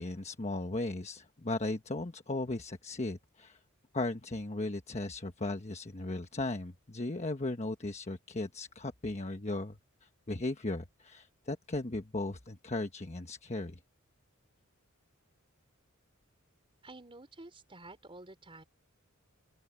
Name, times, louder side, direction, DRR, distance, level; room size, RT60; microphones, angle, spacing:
voice 1, 0.0-3.6 3.9-13.8, left 2 dB, 30° left, 1.2 m, -37 dB
voice 2, 16.8-18.6, right 2 dB, 25° right, 4.4 m, -50 dB
open air
head